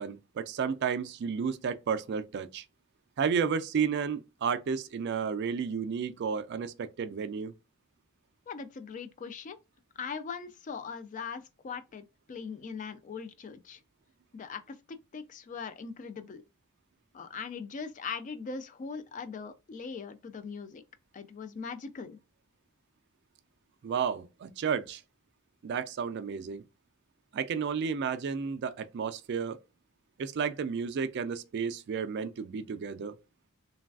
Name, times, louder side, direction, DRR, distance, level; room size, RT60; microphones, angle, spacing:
voice 1, 0.0-2.6 3.2-7.5 23.8-25.0 25.6-26.6 27.3-29.6 30.2-33.2, right 6 dB, 50° right, 0.3 m, -32 dB
voice 2, 8.5-9.6 10.0-13.8 14.3-16.4 17.1-20.8 21.1-22.2, left 5 dB, 35° left, 0.3 m, -40 dB
3.2 x 2.3 x 2.3 m
head